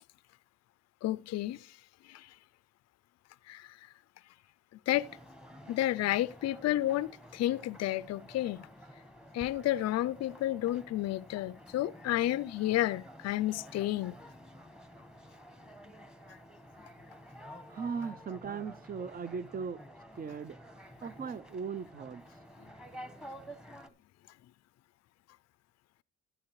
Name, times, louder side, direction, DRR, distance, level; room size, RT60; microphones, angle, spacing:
voice 1, 1.0-1.7 2.1-2.3 3.5-3.7 4.9-5.1 5.7-8.7 9.3-14.1, left 14 dB, 60° left, 0.4 m, -31 dB
sound 1, 4.9-23.9, equal, 5° right, 1.2 m, -51 dB
voice 2, 17.7-19.8 20.2-20.6 21.0-22.2 22.9-23.0, right 6 dB, 30° right, 0.5 m, -38 dB
14.0 x 9.0 x 3.1 m
cardioid pair, 90°, 30 cm